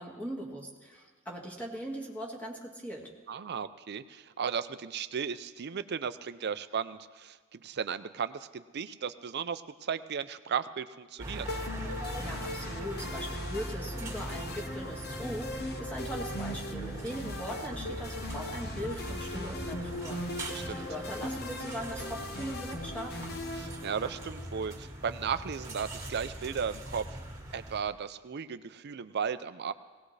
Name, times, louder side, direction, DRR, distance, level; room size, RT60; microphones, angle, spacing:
voice 1, 0.0-3.1 12.2-20.3 20.7-23.4, equal, 5° left, -1 dB, 1.8 m, -40 dB
voice 2, 3.3-11.5 20.5-20.9 23.5-27.2 27.5-29.7, right 7 dB, 50° right, 12 dB, 0.5 m, -35 dB
sound 1, 11.2-27.8, right 1 dB, 15° right, 1.9 m, -41 dB
sound 2, 11.5-24.5, left 1 dB, 50° left, 0.9 m, -40 dB
19.5 x 17.5 x 3.3 m, 1.4 s
head